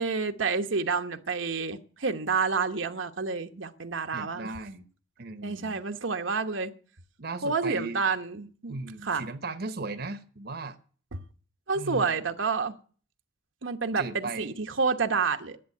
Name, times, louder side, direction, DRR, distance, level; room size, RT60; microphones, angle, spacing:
voice 1, 0.0-4.5 5.4-6.7 7.4-8.7 9.0-9.2 11.7-12.7 13.6-15.6, right 4 dB, 75° right, 1.1 m, -29 dB
voice 2, 4.1-4.9 5.2-5.8 7.2-8.0 8.7-10.8 11.7-12.2 14.0-14.5, right 3 dB, 55° right, 1.0 m, -37 dB
11.0 x 7.5 x 9.7 m
head